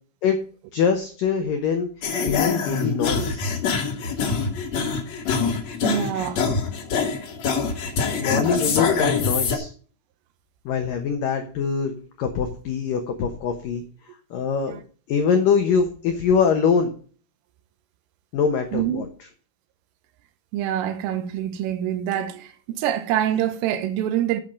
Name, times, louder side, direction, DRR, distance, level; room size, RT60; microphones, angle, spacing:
voice 1, 0.7-1.9 2.2-3.4 8.2-9.7 10.7-11.9 12.2-13.8 14.3-14.8 15.1-16.9 18.3-19.1, left 6 dB, 85° left, 1.9 m, -23 dB
sound 1, 2.0-9.6, left 5 dB, 65° left, 1.7 m, -25 dB
voice 2, 5.8-6.5 14.7-14.8 18.7-19.1 20.5-24.4, right 11 dB, 85° right, 3.6 m, -25 dB
8.8 x 8.6 x 5.2 m
omnidirectional pair, 5.8 m